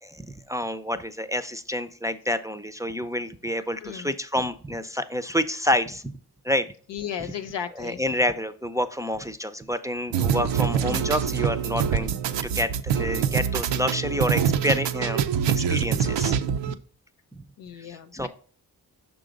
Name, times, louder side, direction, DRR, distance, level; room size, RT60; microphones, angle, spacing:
voice 1, 0.0-6.2 6.4-6.6 7.8-12.1 12.4-15.2 15.5-16.8 17.3-17.4 17.7-18.3, equal, 10° right, 7 dB, 0.4 m, -28 dB
voice 2, 3.8-4.1 6.9-8.0 17.6-18.3, left 8 dB, 90° left, 8 dB, 0.8 m, -35 dB
sound 1, 10.1-16.7, right 8 dB, 85° right, 0.6 m, -25 dB
6.1 x 3.8 x 5.1 m, 0.43 s
cardioid pair, 70°, 42 cm